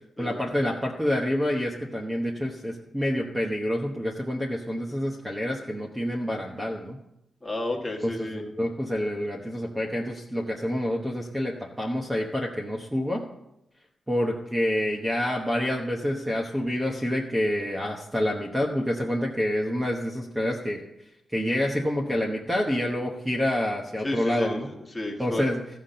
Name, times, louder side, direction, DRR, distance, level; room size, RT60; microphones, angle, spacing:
voice 1, 0.2-7.0 8.0-13.2 14.1-20.8 21.3-24.7 25.2-25.6, left 1 dB, 10° right, -1 dB, 1.0 m, -27 dB
voice 2, 7.4-8.4 24.0-25.5, left 2 dB, 10° left, -1 dB, 1.6 m, -32 dB
14.5 x 5.8 x 6.7 m, 0.85 s
wide cardioid pair, 160°, 0 cm